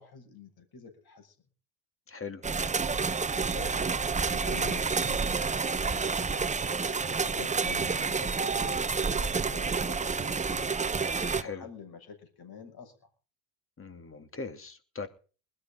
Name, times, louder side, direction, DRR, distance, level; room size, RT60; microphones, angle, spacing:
voice 1, 0.0-1.3 3.3-3.8 4.3-6.4 7.3-10.7 11.4-13.1, left 5 dB, 45° left, 6.8 m, -47 dB
voice 2, 2.1-2.4 7.2-7.4 11.4-11.6 13.8-15.1, left 4 dB, 25° left, 2.9 m, -40 dB
sound 1, 2.4-11.4, right 4 dB, 15° right, 0.9 m, -29 dB
20.5 x 13.5 x 3.9 m
supercardioid pair, 90°, 50 cm